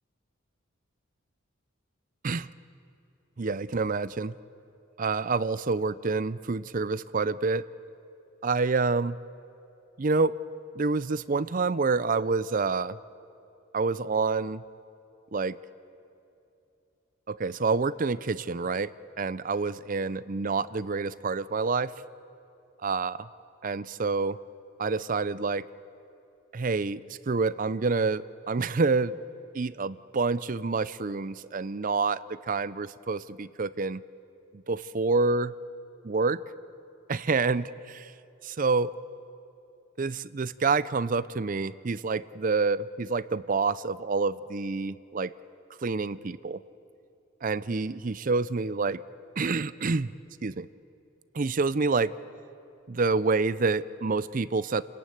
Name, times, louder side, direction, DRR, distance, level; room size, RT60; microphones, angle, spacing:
voice 1, 3.4-4.3 5.0-7.6 8.4-9.2 10.0-10.3 10.8-13.0 13.7-14.6 15.3-15.6 17.3-21.9 22.8-23.3 23.6-24.4 24.8-25.6 26.5-29.2 29.5-34.0 34.7-35.5 36.0-36.4 37.1-38.1 38.4-38.9 40.0-45.3 45.8-46.6 47.4-49.0 49.4-50.1 50.4-50.7 51.3-52.1 52.9-54.8, right 4 dB, 40° right, 16 dB, 0.5 m, -27 dB
28.0 x 14.5 x 9.2 m, 2.8 s
head